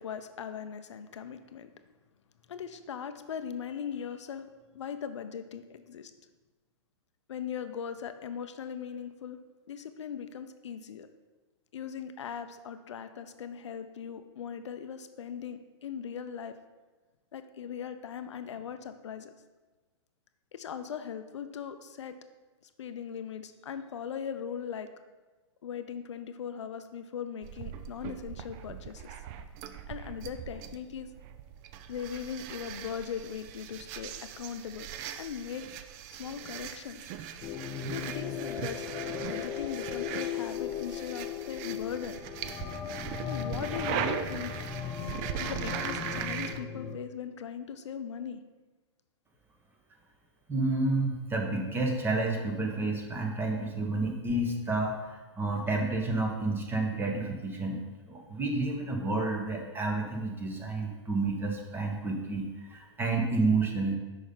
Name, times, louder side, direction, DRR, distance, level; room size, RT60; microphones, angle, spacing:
voice 1, 0.0-1.7 2.5-4.5 4.7-6.1 7.3-9.4 9.7-11.1 11.7-16.6 17.3-19.3 20.5-22.2 22.8-24.9 25.6-29.2 29.9-31.1 31.9-34.9 35.2-35.7 36.2-37.1 37.9-38.9 39.3-42.2 43.2-44.5 45.4-48.4, left 7 dB, 80° left, 10 dB, 0.5 m, -39 dB
sound 1, 27.4-46.6, right 9 dB, 40° right, 0.4 m, -40 dB
sound 2, 37.4-47.0, left 8 dB, 25° left, 0.4 m, -37 dB
voice 2, 50.5-57.8 58.1-63.9, right 2 dB, 15° right, 2 dB, 1.1 m, -30 dB
6.2 x 5.3 x 3.8 m, 1.3 s
hypercardioid pair, 115°, 15 cm